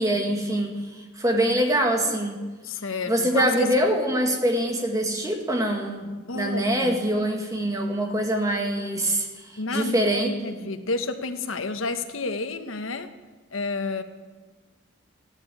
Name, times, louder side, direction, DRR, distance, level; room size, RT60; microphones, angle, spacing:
voice 1, 0.0-2.4 3.1-10.7, right 1 dB, 15° right, 2 dB, 2.0 m, -24 dB
voice 2, 2.6-3.7 6.3-7.0 9.6-13.1 13.5-14.0, left 3 dB, 85° left, 9 dB, 1.2 m, -30 dB
15.0 x 11.5 x 8.5 m, 1.3 s
head